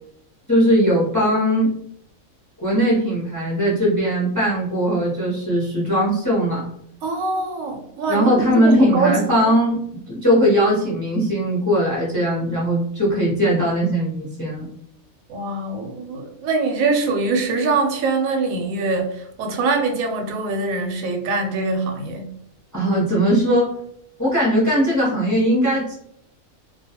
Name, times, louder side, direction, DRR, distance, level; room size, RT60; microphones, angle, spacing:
voice 1, 0.5-1.7 2.6-6.7 8.1-9.8 10.1-14.7 22.7-23.7 24.2-25.9, equal, 20° left, -6 dB, 0.5 m, -19 dB
voice 2, 7.0-9.2 15.3-22.3, right 3 dB, 80° right, 4 dB, 1.0 m, -23 dB
2.3 x 2.3 x 2.8 m, 0.71 s
omnidirectional pair, 1.4 m